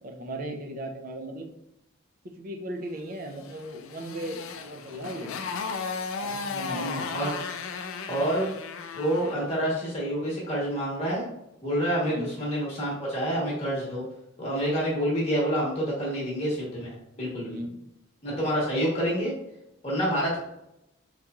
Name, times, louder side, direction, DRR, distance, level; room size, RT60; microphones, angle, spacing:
voice 1, 0.0-1.5 2.2-5.3 6.2-7.1 12.0-12.3 17.4-17.8, right 1 dB, 45° right, 4 dB, 0.4 m, -37 dB
Motorcycle, 3.4-9.5, left 5 dB, 75° left, 0.4 m, -35 dB
voice 2, 6.7-7.4 8.1-8.5 8.9-11.2 11.6-14.1 14.4-17.6 18.2-19.3 19.8-20.4, equal, 30° left, -5 dB, 1.0 m, -28 dB
3.8 x 2.9 x 2.3 m, 0.84 s
head